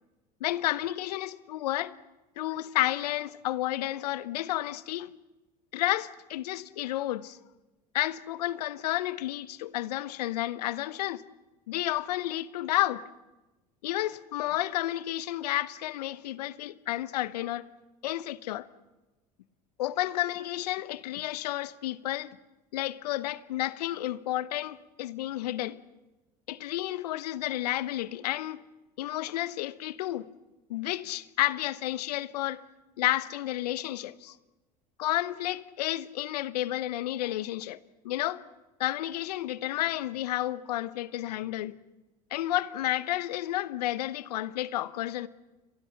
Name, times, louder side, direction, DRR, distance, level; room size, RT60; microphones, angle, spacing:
voice 1, 0.4-2.0 2.4-5.1 5.7-7.4 7.9-11.2 11.7-13.0 13.8-17.6 18.0-18.7 19.8-22.3 22.7-25.8 26.5-28.6 29.0-30.3 30.7-32.6 33.0-34.4 35.0-37.8 38.0-38.4 38.8-41.8 42.3-45.3, left 14 dB, 80° left, 1.0 m, -31 dB
29.5 x 23.5 x 5.9 m
hypercardioid pair, 75°, 20 cm